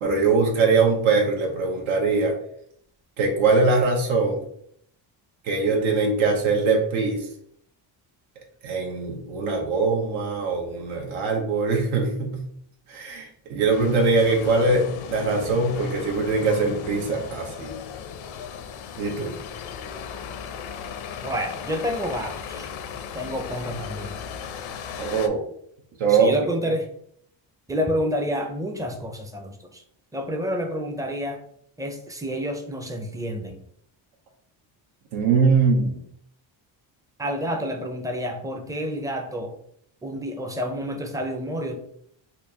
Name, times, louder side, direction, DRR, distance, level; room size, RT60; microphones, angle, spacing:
voice 1, 0.0-2.3 3.2-4.4 5.4-7.3 8.6-12.5 12.9-17.7 19.0-19.4 25.0-25.4 26.0-26.3 35.1-36.0, right 4 dB, 90° right, 0 dB, 1.0 m, -22 dB
sound 1, 13.7-25.3, left 7 dB, 80° left, 0.6 m, -36 dB
voice 2, 21.2-22.7 23.1-24.2 26.1-26.9 27.7-29.8 30.1-31.4 31.8-33.6 37.2-39.6 40.0-41.8, equal, 10° right, 4 dB, 0.4 m, -29 dB
4.3 x 2.6 x 2.8 m, 0.67 s
cardioid pair, 120°, 47 cm